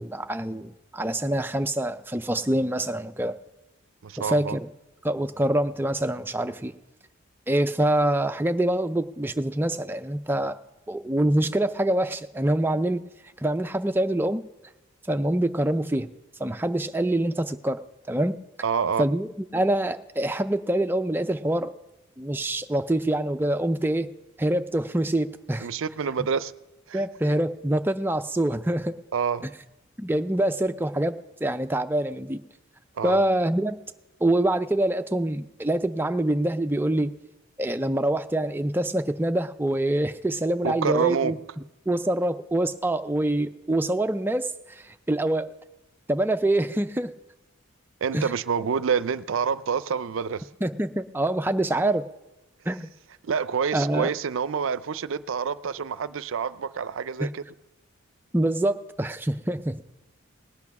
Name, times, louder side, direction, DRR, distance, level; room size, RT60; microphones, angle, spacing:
voice 1, 0.0-3.4 4.2-4.7 5.0-6.7 7.5-10.6 10.9-13.0 13.4-14.4 15.1-16.1 16.4-17.8 18.1-18.4 19.0-21.7 22.2-24.1 24.4-25.7 26.9-29.0 30.0-31.2 31.4-32.4 33.0-33.8 34.2-37.1 37.6-41.4 41.9-45.5 46.1-47.1 48.1-48.3 50.6-52.0 52.7-52.9 53.7-54.1 57.2-57.3 58.3-59.8, right 1 dB, 10° right, 0.4 m, -25 dB
voice 2, 4.0-4.6 18.6-19.0 25.6-26.5 26.9-27.0 29.1-29.5 33.0-33.2 40.6-41.4 48.0-50.5 53.2-57.4, right 6 dB, 70° right, 0.5 m, -27 dB
19.0 x 8.4 x 5.9 m
head